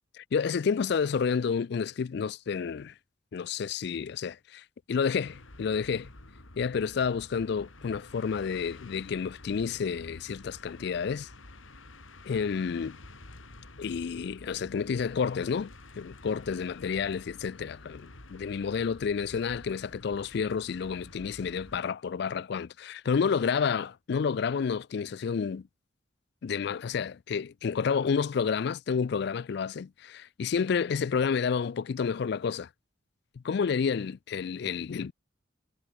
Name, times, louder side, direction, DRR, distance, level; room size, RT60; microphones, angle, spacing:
voice 1, 0.3-2.9 3.3-6.1 6.6-11.3 12.3-13.0 13.8-25.7 26.4-32.7 33.4-35.1, left 6 dB, 55° left, 0.3 m, -30 dB
sound 1, 5.2-21.8, left 2 dB, 80° left, 3.3 m, -50 dB
head